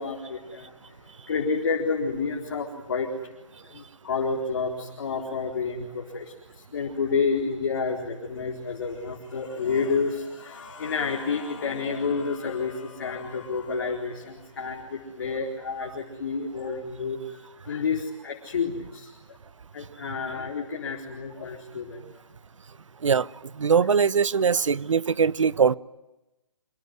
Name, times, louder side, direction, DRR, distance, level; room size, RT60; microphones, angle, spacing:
voice 1, 0.0-3.1 3.6-19.4 19.7-22.0, left 5 dB, 45° left, 4.2 m, -30 dB
voice 2, 23.5-25.8, right 6 dB, 70° right, 0.9 m, -21 dB
26.0 x 23.5 x 9.6 m
hypercardioid pair, 170°, 17 cm